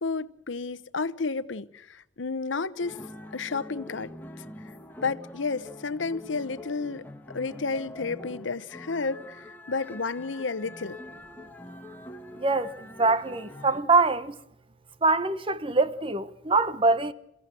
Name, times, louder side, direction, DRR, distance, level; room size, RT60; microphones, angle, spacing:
voice 1, 0.0-3.0 3.3-4.1 5.0-7.1 7.3-11.0, left 4 dB, 80° left, 0.9 m, -31 dB
sound 1, 2.8-13.8, left 1 dB, 10° left, 1.7 m, -45 dB
voice 2, 12.4-14.4 15.0-17.1, right 3 dB, 30° right, 0.9 m, -24 dB
28.5 x 16.0 x 7.7 m
head